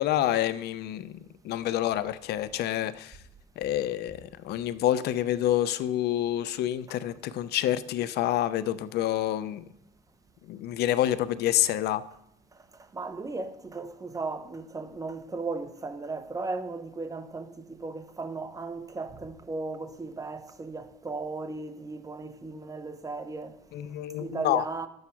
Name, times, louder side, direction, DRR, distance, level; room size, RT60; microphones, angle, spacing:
voice 1, 0.0-3.2 3.6-9.6 10.5-12.0 23.7-24.6, left 12 dB, 75° left, 0.6 m, -28 dB
voice 2, 12.9-23.6 24.2-24.9, right 3 dB, 20° right, 1.0 m, -36 dB
11.0 x 7.9 x 5.8 m
cardioid pair, 110°, 17 cm